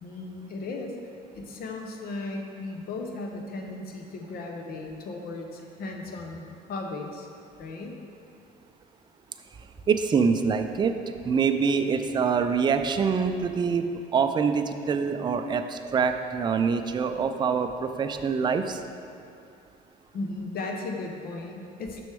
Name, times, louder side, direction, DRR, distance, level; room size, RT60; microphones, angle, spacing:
voice 1, 0.0-1.0 1.3-7.3 7.6-7.9 20.1-22.0, left 2 dB, 65° left, 2 dB, 0.8 m, -36 dB
voice 2, 9.9-11.0 11.2-13.8 14.1-18.8, right 6 dB, 25° right, 7 dB, 0.4 m, -25 dB
6.3 x 6.1 x 3.4 m, 2.5 s
cardioid pair, 110°, 17 cm